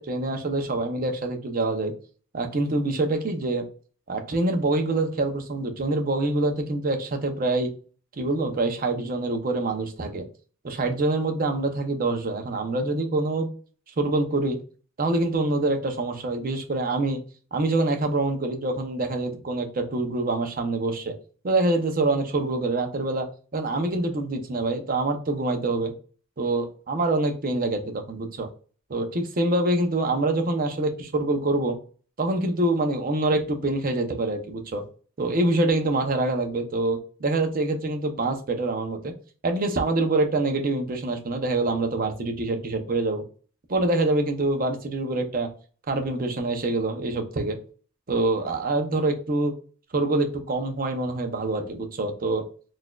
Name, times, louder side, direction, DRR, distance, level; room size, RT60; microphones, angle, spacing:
voice 1, 0.0-1.9 2.3-3.6 4.1-7.7 8.2-10.3 10.6-13.5 14.0-14.6 15.0-17.2 17.5-21.1 21.4-25.9 26.4-28.5 28.9-31.8 32.2-34.8 35.2-39.1 39.4-43.2 43.7-45.5 45.9-47.6 48.1-49.5 49.9-52.4, right 2 dB, 45° right, 5 dB, 0.6 m, -25 dB
4.0 x 2.5 x 2.3 m, 0.40 s
head